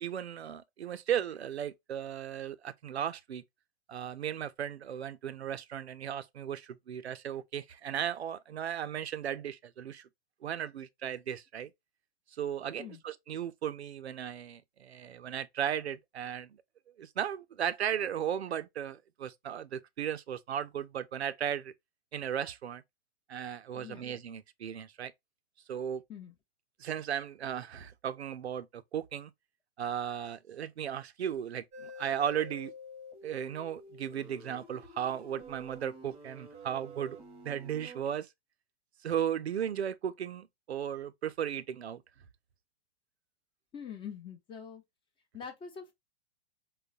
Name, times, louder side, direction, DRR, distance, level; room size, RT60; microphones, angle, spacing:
voice 1, 0.0-3.4 3.9-10.1 10.4-11.7 12.3-16.6 17.0-21.7 22.1-22.8 23.3-25.1 25.7-26.0 26.8-29.3 29.8-32.7 33.2-37.2 37.4-38.3 39.0-42.0, right 9 dB, 85° right, 0.5 m, -36 dB
voice 2, 23.7-24.1 26.1-26.3 43.7-44.8 45.3-45.9, left 7 dB, 15° left, 0.6 m, -44 dB
sound 1, 31.7-38.0, left 1 dB, 20° right, 0.8 m, -49 dB
3.8 x 2.1 x 2.4 m
figure-of-eight pair, 110°, 32 cm